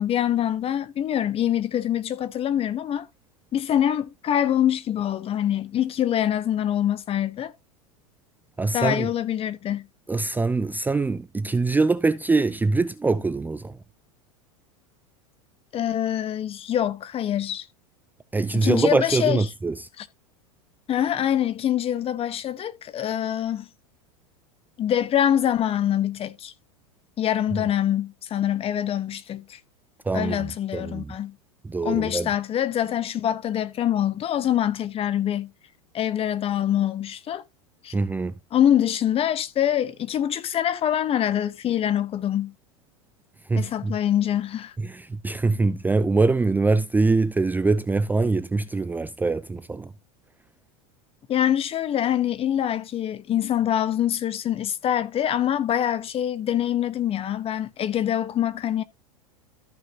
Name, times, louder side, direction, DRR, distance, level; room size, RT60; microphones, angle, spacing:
voice 1, 0.0-3.1 3.5-7.5 8.7-9.9 15.7-17.6 18.5-19.4 20.0-20.1 20.9-23.7 24.8-26.5 27.2-29.6 30.1-31.3 31.8-35.5 35.9-37.4 37.8-37.9 38.5-42.5 43.6-44.7 51.3-58.8, left 10 dB, 30° left, 1.1 m, -24 dB
voice 2, 8.6-9.1 10.1-13.8 18.3-19.8 30.1-31.1 31.6-32.3 37.9-38.3 43.5-43.9 44.8-49.9, right 3 dB, 10° right, 0.5 m, -23 dB
14.0 x 5.9 x 2.8 m
hypercardioid pair, 90°, 18 cm